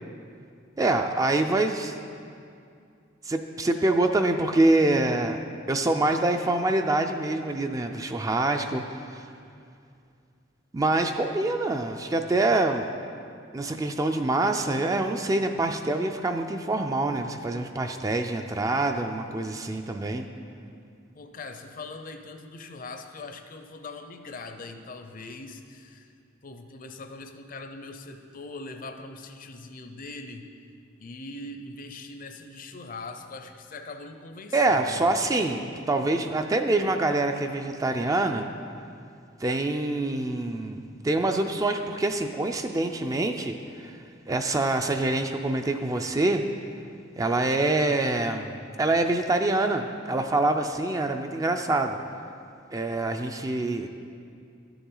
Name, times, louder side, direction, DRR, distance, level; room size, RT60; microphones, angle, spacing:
voice 1, 0.8-2.0 3.2-5.4 5.7-9.2 10.7-12.9 13.5-20.2 34.5-38.5 39.4-44.0 44.3-46.4 47.2-48.5 48.8-52.0 52.7-53.9, right 2 dB, 20° right, 6 dB, 0.3 m, -25 dB
voice 2, 21.1-26.1 26.4-30.5 31.0-35.2, left 3 dB, 45° left, 6 dB, 0.6 m, -41 dB
12.5 x 7.0 x 3.8 m, 2.4 s
head